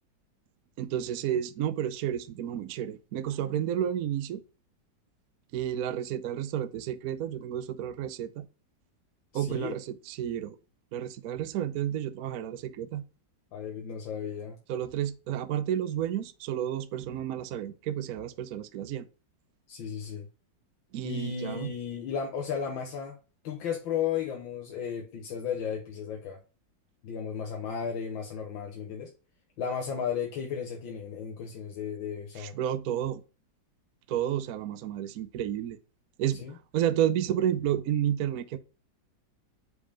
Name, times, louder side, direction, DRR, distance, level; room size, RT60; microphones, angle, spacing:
voice 1, 0.8-4.4 5.5-8.5 9.3-10.6 10.9-13.0 14.7-19.0 20.9-21.7 32.4-33.2 34.1-35.8 36.2-36.4 36.7-38.6, right 10 dB, 65° right, 0.9 m, -31 dB
voice 2, 9.3-9.8 13.5-14.6 19.7-20.3 21.0-23.2 23.4-26.4 27.0-29.1 29.6-32.5 36.4-36.6, left 7 dB, 90° left, 1.8 m, -34 dB
5.3 x 4.9 x 5.0 m
omnidirectional pair, 2.0 m